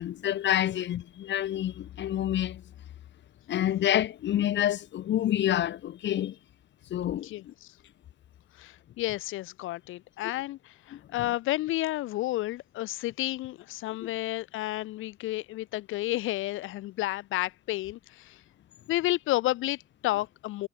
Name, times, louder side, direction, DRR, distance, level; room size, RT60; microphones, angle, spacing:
voice 1, 0.0-2.6 3.5-6.4 6.9-7.5 10.9-11.0 14.0-14.1, left 11 dB, 65° left, 0.9 m, -28 dB
voice 2, 7.2-7.7 8.6-18.4 18.9-20.7, left 16 dB, 90° left, 1.3 m, -31 dB
cardioid pair, 90°, 20 cm